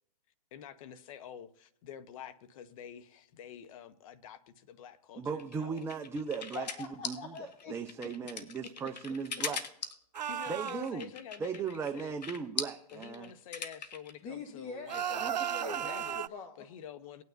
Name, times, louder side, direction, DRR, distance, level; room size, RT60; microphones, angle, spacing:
voice 1, 0.5-5.9 10.3-12.2 12.9-15.3 15.6-16.2 16.6-17.2, left 8 dB, 55° left, 1.0 m, -48 dB
voice 2, 5.2-6.7 7.1-7.3 7.7-9.6 10.5-11.1 11.4-13.3 15.2-15.3 15.6-15.9, right 6 dB, 10° right, 0.6 m, -37 dB
sound 1, 5.4-14.1, left 6 dB, 80° left, 1.3 m, -40 dB
voice 3, 6.5-7.8 8.0-8.2 8.6-8.7 9.4-9.5 14.2-16.5, left 4 dB, 30° left, 1.2 m, -43 dB
sound 2, 10.1-10.9 14.9-16.3, right 10 dB, 90° right, 0.4 m, -35 dB
18.5 x 9.4 x 2.6 m
hypercardioid pair, 125°, 21 cm